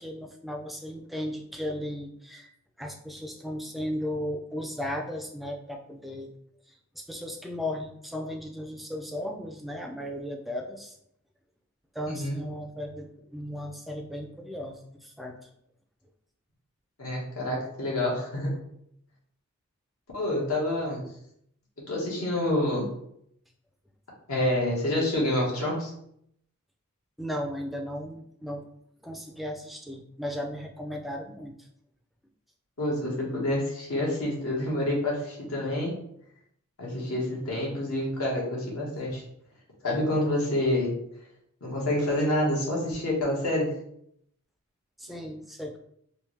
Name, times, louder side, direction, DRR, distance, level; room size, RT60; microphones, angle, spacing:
voice 1, 0.0-2.5 2.8-6.3 6.7-11.0 11.9-15.5 27.2-28.7 29.0-31.7 45.0-45.8, left 1 dB, ahead, 3 dB, 0.3 m, -36 dB
voice 2, 12.1-12.4 17.0-18.5 20.1-21.0 21.9-22.9 24.3-25.9 32.8-35.9 36.8-39.2 39.8-40.9 41.6-43.7, left 1 dB, 70° left, -3 dB, 1.3 m, -27 dB
3.4 x 2.7 x 3.1 m, 0.72 s
head